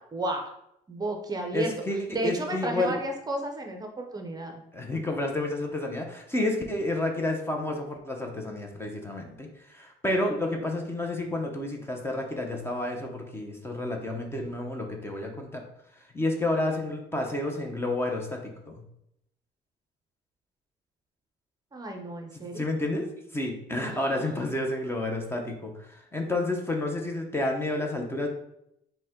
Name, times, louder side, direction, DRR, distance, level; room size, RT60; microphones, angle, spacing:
voice 1, 0.1-0.5 0.9-1.7 2.1-4.6 21.7-22.6 23.9-24.1, right 1 dB, 25° right, 3 dB, 0.6 m, -32 dB
voice 2, 1.5-2.9 4.7-15.6 16.1-18.8 22.6-28.3, left 2 dB, 15° left, 2 dB, 0.7 m, -30 dB
5.1 x 2.2 x 3.6 m, 0.78 s
cardioid pair, 110°, 17 cm